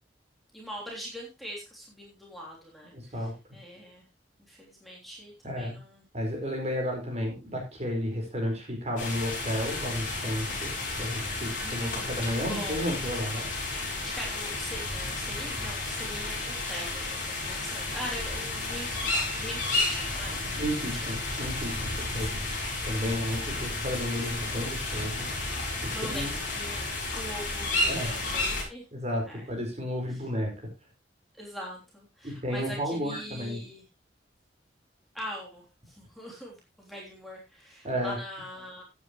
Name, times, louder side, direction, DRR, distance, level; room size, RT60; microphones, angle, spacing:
voice 1, 0.5-4.0 4.5-6.0 11.5-12.8 13.7-19.1 19.4-20.7 22.0-22.5 24.2-24.4 25.9-28.9 29.2-29.5 30.1-30.2 31.3-33.8 35.1-38.8, equal, ahead, -3 dB, 3.3 m, -42 dB
voice 2, 2.9-3.3 5.4-5.8 6.1-10.7 11.0-13.5 20.5-22.4 22.8-25.3 25.8-26.3 27.9-28.1 28.9-30.5 32.2-33.6 37.8-38.2, equal, 40° right, 2 dB, 4.8 m, -32 dB
sound 1, 9.0-28.6, left 2 dB, 50° left, 7.3 m, -32 dB
14.0 x 9.7 x 3.1 m, 0.26 s
head